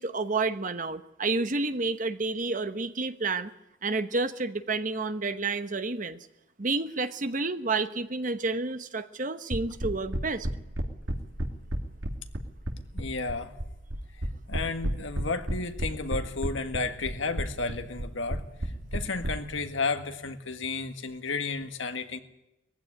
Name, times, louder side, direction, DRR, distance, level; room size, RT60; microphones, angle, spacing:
voice 1, 0.0-3.5 3.8-6.3 6.6-10.5, right 3 dB, 40° right, 11 dB, 1.0 m, -30 dB
sound 1, 9.5-19.3, right 1 dB, 85° right, 2.5 m, -31 dB
voice 2, 12.9-13.5 14.5-22.2, left 4 dB, 75° left, 8 dB, 1.8 m, -32 dB
20.0 x 15.5 x 10.0 m, 0.89 s
head